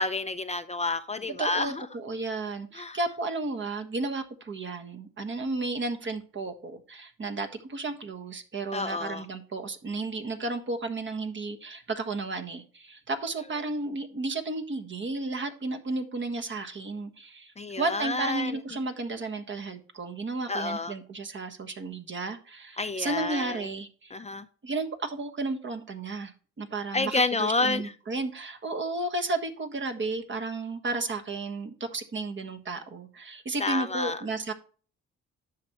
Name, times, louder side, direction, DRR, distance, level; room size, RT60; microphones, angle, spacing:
voice 1, 0.0-1.9 2.7-3.0 8.7-9.2 17.6-18.6 20.5-20.9 22.8-23.6 24.1-24.4 26.9-27.8 33.6-34.2, left 3 dB, 20° left, 0.5 m, -29 dB
voice 2, 1.3-24.1 24.6-34.5, right 3 dB, 40° right, 1.5 m, -33 dB
10.0 x 6.7 x 3.0 m
cardioid pair, 90°, 30 cm